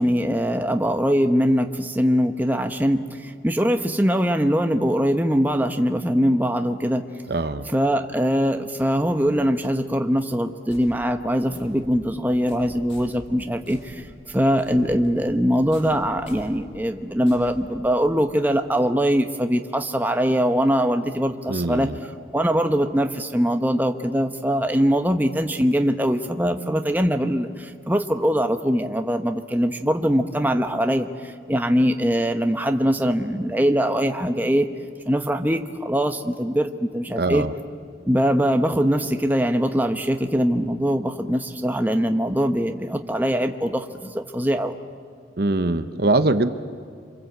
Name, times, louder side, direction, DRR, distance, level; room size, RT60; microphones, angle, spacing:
voice 1, 0.0-7.0 7.7-21.9 22.3-34.7 35.1-37.4 38.1-44.8, equal, 10° right, 5 dB, 1.0 m, -22 dB
voice 2, 7.3-7.7 21.5-22.0 37.2-37.5 45.4-46.5, right 2 dB, 55° right, 11 dB, 0.9 m, -22 dB
sound 1, 10.7-18.3, equal, 70° left, 6.4 m, -46 dB
28.0 x 25.5 x 8.0 m, 2.2 s
head